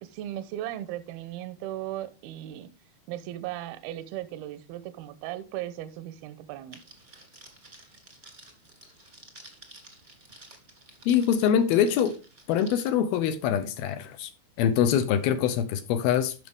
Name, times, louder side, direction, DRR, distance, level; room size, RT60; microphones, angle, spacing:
voice 1, 0.0-2.7 3.1-6.8, right 13 dB, 80° right, 2.5 m, -37 dB
Crackle, 6.7-12.9, right 2 dB, 25° right, 1.1 m, -51 dB
voice 2, 11.1-12.1 12.5-14.3 14.6-16.3, left 9 dB, 75° left, 2.5 m, -24 dB
12.5 x 5.8 x 3.6 m
omnidirectional pair, 4.7 m